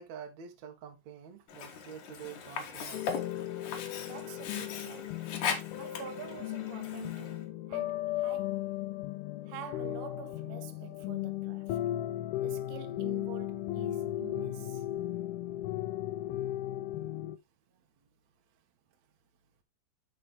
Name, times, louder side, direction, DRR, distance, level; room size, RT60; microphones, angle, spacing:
voice 1, 0.0-3.2 17.7-17.8, right 7 dB, 60° right, 2.0 m, -47 dB
Sink (filling or washing), 1.5-7.4, left 6 dB, 65° left, 2.1 m, -39 dB
sound 1, 2.9-17.4, left 13 dB, 80° left, 2.3 m, -36 dB
voice 2, 3.9-5.3 5.7-8.7 9.5-11.8 12.4-14.9, right 12 dB, 80° right, 2.9 m, -48 dB
10.0 x 4.4 x 3.5 m
omnidirectional pair, 5.0 m